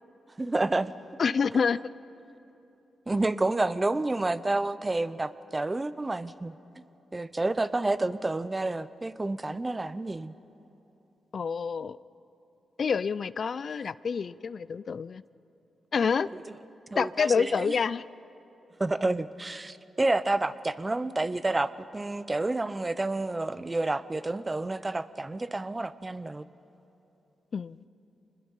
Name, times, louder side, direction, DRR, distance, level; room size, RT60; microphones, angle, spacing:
voice 1, 0.4-0.9 3.1-6.6 7.1-10.3 16.9-17.6 18.8-26.4, right 2 dB, 25° right, 15 dB, 0.8 m, -29 dB
voice 2, 1.2-1.8 11.3-12.0 12.8-15.2 15.9-16.3 16.9-18.0 27.5-27.8, left 6 dB, 60° left, 18 dB, 0.4 m, -27 dB
25.5 x 20.5 x 5.6 m, 3.0 s
supercardioid pair, 50°, 0 cm